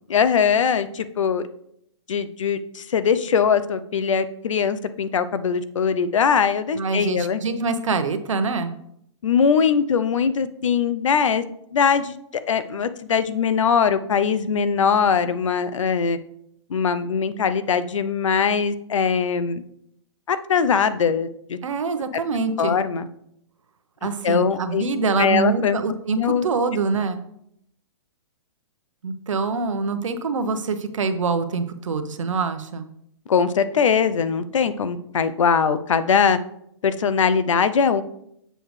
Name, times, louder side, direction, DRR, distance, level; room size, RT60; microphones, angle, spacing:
voice 1, 0.1-1.4 2.1-7.4 9.2-11.4 11.7-12.2 12.5-16.2 16.7-19.6 20.3-21.6 22.6-23.1 24.2-24.8 25.2-25.8 26.1-26.5 33.3-36.4 36.8-38.0, left 6 dB, 90° left, 13 dB, 0.6 m, -21 dB
voice 2, 6.7-8.8 21.6-22.8 24.0-27.2 29.0-32.9, right 4 dB, 90° right, 9 dB, 0.9 m, -25 dB
7.7 x 6.5 x 3.2 m, 0.73 s
hypercardioid pair, 145°, 16 cm